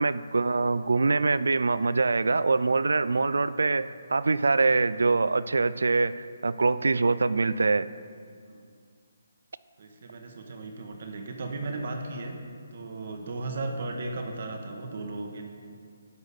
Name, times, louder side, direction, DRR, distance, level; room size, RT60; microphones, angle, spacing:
voice 1, 0.0-7.9, right 3 dB, 80° right, 16 dB, 0.3 m, -24 dB
voice 2, 9.8-12.3 12.7-15.5, right 2 dB, 55° right, 3 dB, 1.2 m, -36 dB
10.5 x 4.0 x 6.6 m, 2.2 s
figure-of-eight pair, 150°, 0 cm